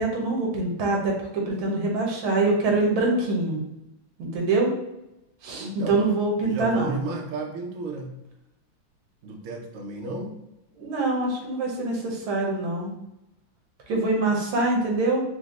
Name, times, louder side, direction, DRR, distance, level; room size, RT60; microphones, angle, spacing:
voice 1, 0.0-3.6 4.2-4.7 5.4-7.0 10.8-12.9 13.9-15.2, right 2 dB, 85° right, 0 dB, 1.8 m, -24 dB
voice 2, 5.6-6.1 6.4-8.1 9.2-10.3, right 2 dB, 70° right, 1 dB, 0.8 m, -33 dB
5.0 x 2.1 x 3.7 m, 0.91 s
omnidirectional pair, 2.2 m